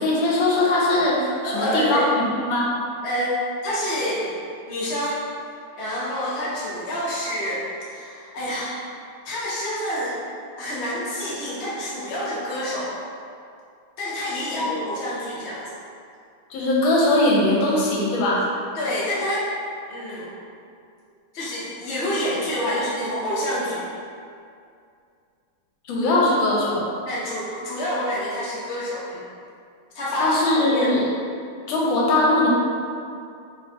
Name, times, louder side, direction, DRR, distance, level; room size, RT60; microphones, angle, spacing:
voice 1, 0.0-2.7 14.6-14.8 16.5-18.5 25.9-26.8 30.1-31.1 31.7-32.5, left 2 dB, 85° left, -4 dB, 1.4 m, -20 dB
voice 2, 1.4-2.1 3.0-3.4 3.6-4.3 4.7-5.2 5.8-8.8 9.2-10.2 10.6-12.9 14.0-15.7 18.7-19.5 19.9-20.4 21.3-23.9 27.1-29.2 29.9-30.9, equal, 70° left, -8 dB, 0.6 m, -27 dB
3.5 x 2.1 x 2.6 m, 2.4 s
omnidirectional pair, 2.1 m